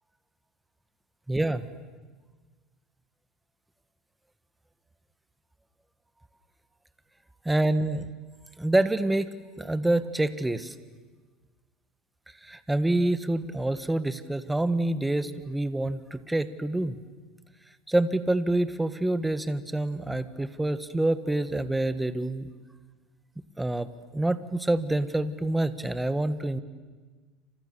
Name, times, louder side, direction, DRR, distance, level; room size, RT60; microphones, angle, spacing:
voice 1, 1.3-1.6 7.4-8.1 8.6-9.3 9.6-10.7 12.4-17.0 17.9-22.5 23.6-26.6, right 1 dB, 5° right, 12 dB, 1.4 m, -27 dB
29.5 x 26.5 x 6.9 m, 1.4 s
supercardioid pair, 120°, 0 cm